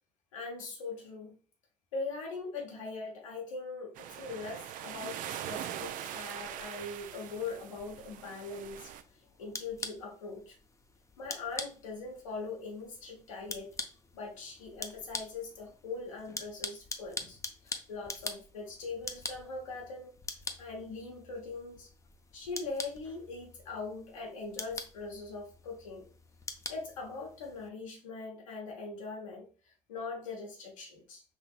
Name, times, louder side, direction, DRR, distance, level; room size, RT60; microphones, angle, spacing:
voice 1, 0.3-1.4 1.9-10.5 11.2-13.7 14.1-20.2 20.6-21.9 22.3-26.1 26.7-31.2, left 3 dB, 90° left, -1 dB, 1.1 m, -41 dB
sound 1, 4.0-9.0, right 11 dB, 55° right, 0.4 m, -42 dB
sound 2, 8.9-27.7, left 3 dB, 20° left, 0.6 m, -45 dB
4.1 x 2.7 x 2.4 m, 0.37 s
hypercardioid pair, 60°, 16 cm